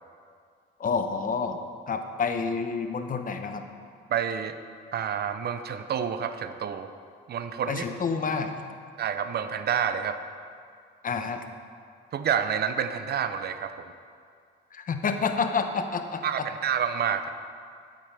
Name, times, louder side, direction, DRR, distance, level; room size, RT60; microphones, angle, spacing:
voice 1, 0.8-1.6 1.9-3.6 7.7-8.5 11.0-11.4 14.7-16.5, left 5 dB, 45° left, 7 dB, 0.8 m, -29 dB
voice 2, 4.1-4.6 4.9-6.9 7.3-7.8 9.0-10.2 12.1-13.9 16.2-17.3, right 8 dB, 55° right, 10 dB, 0.6 m, -28 dB
11.5 x 9.1 x 3.4 m, 2.2 s
cardioid pair, 90°, 20 cm